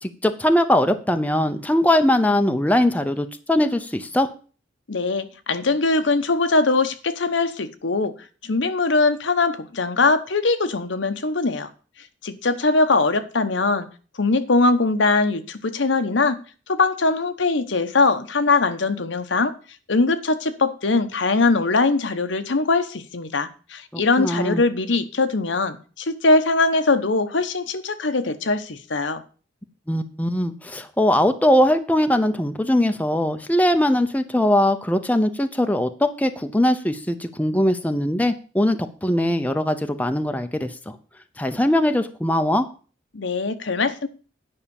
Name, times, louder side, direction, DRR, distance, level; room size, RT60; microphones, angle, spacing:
voice 1, 0.0-4.3 23.9-24.6 29.9-40.9 41.4-42.6, left 1 dB, 10° left, 7 dB, 0.7 m, -21 dB
voice 2, 4.9-8.1 8.4-11.7 12.2-13.9 14.2-16.4 16.7-19.5 19.9-29.2 43.1-44.1, left 3 dB, 75° left, 9 dB, 1.0 m, -21 dB
9.7 x 5.6 x 7.1 m, 0.38 s
head